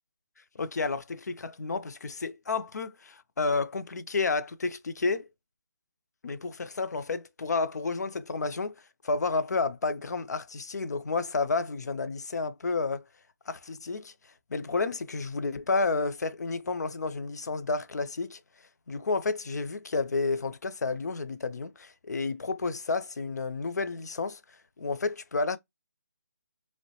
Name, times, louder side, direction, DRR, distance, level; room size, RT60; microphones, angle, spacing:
voice 1, 0.5-5.3 6.2-13.0 13.5-14.1 14.5-18.4 18.9-24.4 24.8-25.6, left 3 dB, 80° left, 0.4 m, -31 dB
3.0 x 2.1 x 2.7 m
hypercardioid pair, 175°, 9 cm